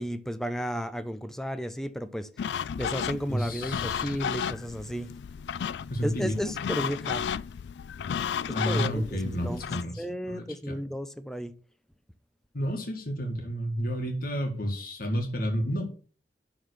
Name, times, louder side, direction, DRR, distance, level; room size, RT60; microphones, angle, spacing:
voice 1, 0.0-2.3 2.8-5.1 6.0-7.2 8.5-9.6 10.0-11.5, equal, 5° left, 0.6 m, -33 dB
sound 1, 2.4-9.8, left 7 dB, 70° left, 0.3 m, -33 dB
voice 2, 3.3-4.2 5.9-6.3 8.5-10.8 12.5-15.9, equal, 55° left, 1.8 m, -31 dB
11.5 x 3.9 x 6.6 m
head